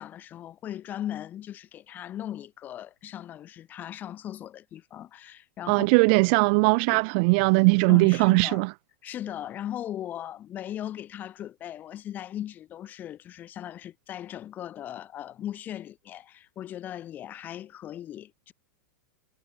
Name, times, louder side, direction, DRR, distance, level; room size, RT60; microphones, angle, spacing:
voice 1, 0.0-5.9 6.9-7.0 7.9-8.6 9.0-18.5, left 11 dB, 20° left, 7.3 m, -38 dB
voice 2, 5.7-8.7, right 33 dB, 30° right, 1.0 m, -20 dB
supercardioid pair, 180°, 10 cm